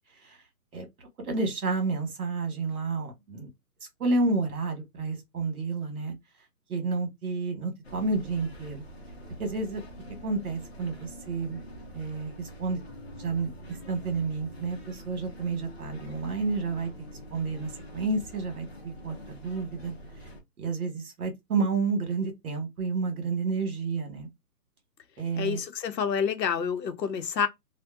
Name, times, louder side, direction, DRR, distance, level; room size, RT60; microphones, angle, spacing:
voice 1, 0.7-3.5 4.0-6.1 6.7-8.9 9.4-9.8 10.2-11.6 11.9-12.8 13.2-19.9 20.6-24.3 25.2-25.6, right 3 dB, 60° right, 1.3 m, -30 dB
sound 1, 7.8-20.4, equal, 40° left, 0.6 m, -45 dB
voice 2, 25.4-27.5, left 7 dB, 85° left, 0.8 m, -28 dB
2.7 x 2.2 x 2.3 m
hypercardioid pair, 175°, 49 cm